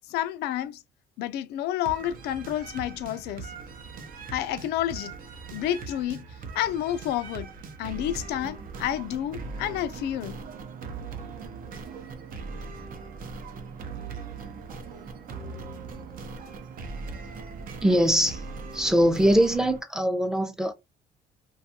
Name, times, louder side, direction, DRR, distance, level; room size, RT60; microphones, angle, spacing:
voice 1, 0.1-0.8 1.2-3.5 4.3-5.1 5.5-6.3 6.5-7.5 7.8-10.4, left 12 dB, 75° left, 0.4 m, -30 dB
sound 1, 1.8-19.8, right 4 dB, 55° right, 0.6 m, -40 dB
voice 2, 17.8-18.4 18.7-20.7, equal, 5° right, 0.5 m, -22 dB
2.5 x 2.3 x 2.7 m
cardioid pair, 110°, 17 cm